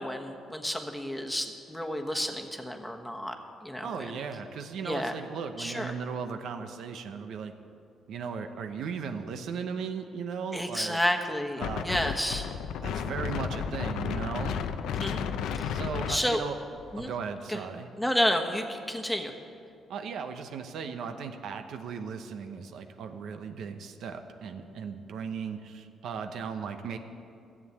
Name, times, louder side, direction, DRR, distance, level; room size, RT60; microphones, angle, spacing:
voice 1, 0.0-3.3 3.6-4.2 4.8-5.1 5.6-5.9 10.5-12.5 14.8-15.2 15.5-15.8 16.1-16.4 16.9-17.1 17.5-17.6 18.0-19.3, equal, 5° left, 3 dB, 1.2 m, -31 dB
voice 2, 3.8-7.5 8.1-11.0 11.6-11.9 12.8-14.6 15.7-16.6 17.0-17.9 19.9-27.0, right 6 dB, 75° right, 7 dB, 0.9 m, -37 dB
Wind, 11.6-17.1, left 7 dB, 85° left, 0.6 m, -33 dB
13.5 x 7.5 x 8.4 m, 2.5 s
cardioid pair, 90°, 0 cm